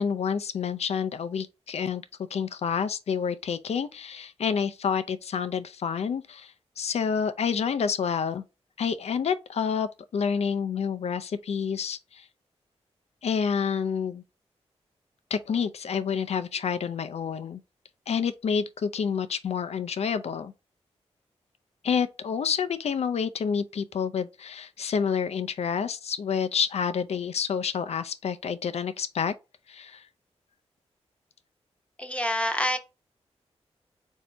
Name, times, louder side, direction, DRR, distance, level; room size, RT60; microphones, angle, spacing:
voice 1, 0.0-2.0 2.3-6.5 6.8-8.4 8.8-12.3 13.2-14.2 15.3-17.6 18.1-20.5 21.8-29.3 29.7-30.0, left 6 dB, 65° left, 0.5 m, -28 dB
voice 2, 32.0-32.8, left 1 dB, 10° left, 0.9 m, -27 dB
4.0 x 2.7 x 3.3 m
cardioid pair, 70°, 11 cm